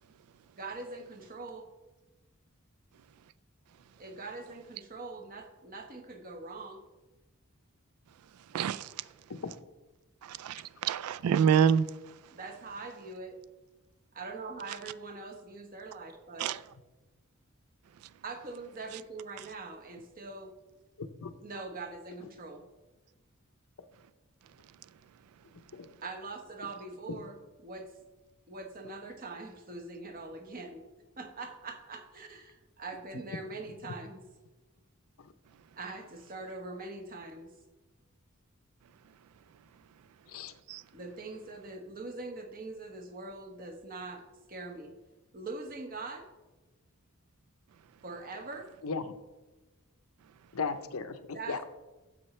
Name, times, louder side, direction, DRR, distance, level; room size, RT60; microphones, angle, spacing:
voice 1, 0.6-1.7 4.0-6.8 12.3-13.4 14.1-16.6 18.2-20.5 21.4-22.6 26.0-27.9 28.5-30.8 31.2-34.2 35.8-37.5 40.9-44.9 45.3-46.3 48.0-48.7 51.3-51.6, right 3 dB, 40° right, 1.1 m, -43 dB
voice 2, 8.5-8.9 10.2-11.9 16.4-16.6 40.7-40.8, right 8 dB, 85° right, 0.3 m, -26 dB
voice 3, 21.0-21.3 25.7-25.9 27.1-27.2 35.2-35.3 40.3-40.5 48.8-49.1 50.5-51.6, left 4 dB, 70° left, 0.6 m, -36 dB
12.5 x 7.4 x 3.2 m
head